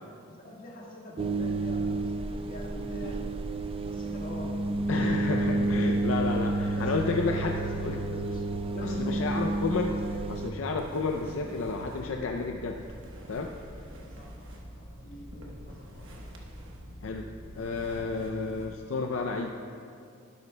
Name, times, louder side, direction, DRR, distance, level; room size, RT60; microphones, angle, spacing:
voice 1, 0.3-3.4 3.8-4.7 6.2-9.6 13.7-14.3 14.8-16.1, left 1 dB, 45° left, -3 dB, 1.5 m, -44 dB
sound 1, 1.2-10.5, right 2 dB, 25° right, 0.4 m, -30 dB
voice 2, 4.9-8.0 8.8-12.8 13.3-13.5 17.0-17.3 17.6-19.7, left 3 dB, 70° left, 3 dB, 0.5 m, -31 dB
sound 2, 5.3-18.7, equal, 65° right, 1.2 m, -46 dB
12.5 x 11.0 x 2.2 m, 2.4 s
head